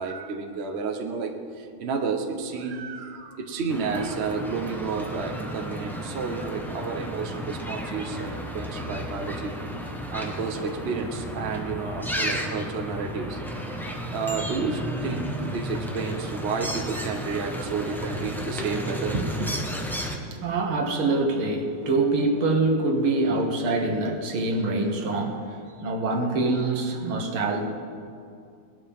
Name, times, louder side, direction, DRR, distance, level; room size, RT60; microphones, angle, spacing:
voice 1, 0.0-9.5 10.1-13.4 14.1-19.5, right 4 dB, 45° right, 4 dB, 0.9 m, -31 dB
sound 1, 3.7-20.2, equal, ahead, 0.5 m, -33 dB
voice 2, 20.1-27.6, right 2 dB, 70° right, 3 dB, 2.1 m, -25 dB
20.0 x 12.5 x 3.6 m, 2.4 s
omnidirectional pair, 2.4 m